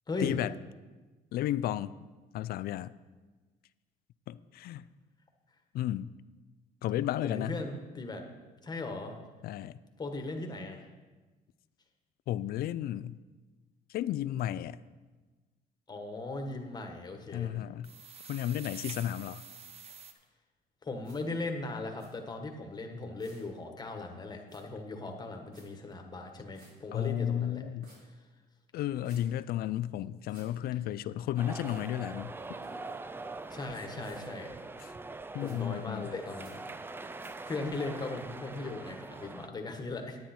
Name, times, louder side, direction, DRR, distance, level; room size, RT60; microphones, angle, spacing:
voice 1, 0.2-0.5 1.3-1.9 2.3-2.9 4.3-4.9 5.7-6.1 6.8-7.6 9.4-9.8 12.3-13.2 13.9-14.8 17.3-17.9 18.3-19.4 26.9-27.9 28.7-32.3 34.8-34.9 35.3-36.1, left 12 dB, 65° left, 17 dB, 0.4 m, -33 dB
voice 2, 7.2-8.2 8.6-9.2 10.0-10.8 15.9-17.5 20.8-27.7 33.5-34.6 35.4-36.6 37.4-40.2, left 2 dB, 25° left, 4 dB, 1.4 m, -38 dB
sound 1, 17.8-20.1, right 5 dB, 35° right, 1.0 m, -47 dB
sound 2, 21.0-21.2 22.0-22.1 23.2-23.5 24.5-24.6 25.5-25.7 26.5-26.7 27.8-28.0 29.0-29.2 30.3-30.5 31.7-31.9 32.6-33.0 34.0-34.2 35.4-35.6 36.4-36.5 37.2-37.3, right 1 dB, 65° right, 3.9 m, -56 dB
sound 3, 31.4-39.5, right 3 dB, 15° right, 0.4 m, -43 dB
10.5 x 9.3 x 4.4 m, 1.3 s
cardioid pair, 110°, 17 cm